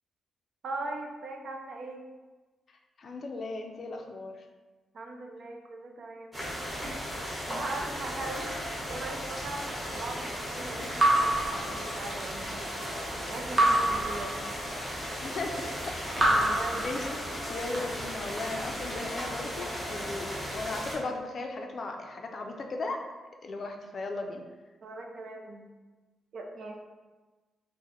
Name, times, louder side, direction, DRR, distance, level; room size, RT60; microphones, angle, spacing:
voice 1, 0.6-2.0 4.9-6.4 7.5-8.5 8.9-12.7 13.3-14.4 16.3-16.9 24.8-25.7 26.3-26.8, right 2 dB, 60° right, 2 dB, 0.5 m, -40 dB
voice 2, 2.7-4.5 15.2-15.7 16.8-17.2 17.5-23.0 23.4-24.4, left 3 dB, 45° left, 3 dB, 0.4 m, -36 dB
sound 1, 6.3-21.0, equal, ahead, 1.0 m, -36 dB
Raindrop / Drip, 11.0-12.4 13.6-14.9 16.1-17.6, right 1 dB, 15° right, 0.8 m, -27 dB
Breathing, 16.0-17.8, right 1 dB, 90° right, 0.9 m, -46 dB
4.6 x 2.1 x 3.0 m, 1.3 s
cardioid pair, 135°, 0 cm